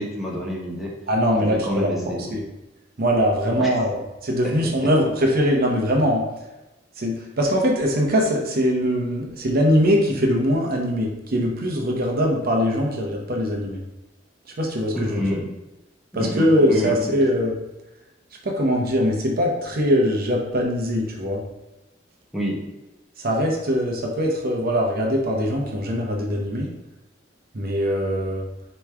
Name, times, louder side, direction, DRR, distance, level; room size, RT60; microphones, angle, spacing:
voice 1, 0.0-0.9 1.4-2.3 3.6-3.7 4.4-4.5 14.9-15.5 16.1-17.0 22.3-22.6, equal, ahead, -5 dB, 0.8 m, -28 dB
voice 2, 1.1-1.9 2.3-2.4 3.0-3.9 4.2-6.2 7.0-13.8 14.6-15.2 16.1-17.5 18.4-21.4 23.2-26.7 27.5-28.4, equal, 50° right, 1 dB, 0.7 m, -22 dB
4.7 x 3.0 x 3.4 m, 1.0 s
head